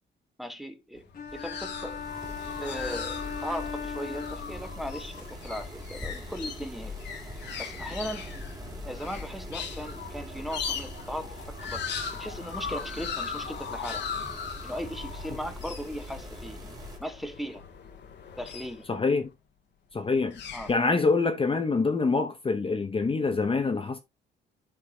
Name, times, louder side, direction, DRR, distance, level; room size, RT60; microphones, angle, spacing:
voice 1, 0.4-1.0 1.3-2.0 2.6-7.0 7.6-8.3 8.8-14.2 14.6-17.6 18.4-18.9 20.5-20.7, equal, ahead, 1.1 m, -38 dB
sound 1, 1.0-19.2 20.0-20.7, left 6 dB, 60° left, 1.3 m, -39 dB
sound 2, 1.1-5.0, left 6 dB, 45° left, 1.3 m, -38 dB
sound 3, 1.3-17.0, left 1 dB, 20° right, 2.2 m, -42 dB
voice 2, 18.9-19.3 19.9-20.4 20.7-24.0, left 4 dB, 25° left, 0.8 m, -25 dB
12.5 x 4.6 x 2.3 m
cardioid pair, 90°, 20 cm